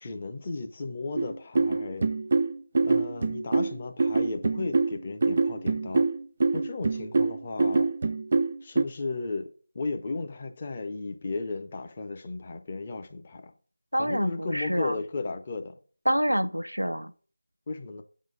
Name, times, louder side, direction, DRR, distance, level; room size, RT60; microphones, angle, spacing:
voice 1, 0.0-2.1 2.8-6.1 6.5-7.9 8.6-9.5 9.7-13.5 14.0-15.7 17.7-18.0, left 3 dB, 25° left, 0.6 m, -35 dB
sound 1, 1.2-8.8, right 3 dB, 30° right, 0.3 m, -25 dB
voice 2, 13.9-15.0 16.1-17.1, equal, 80° right, 0.6 m, -27 dB
7.7 x 3.8 x 4.9 m
figure-of-eight pair, 165°, 0 cm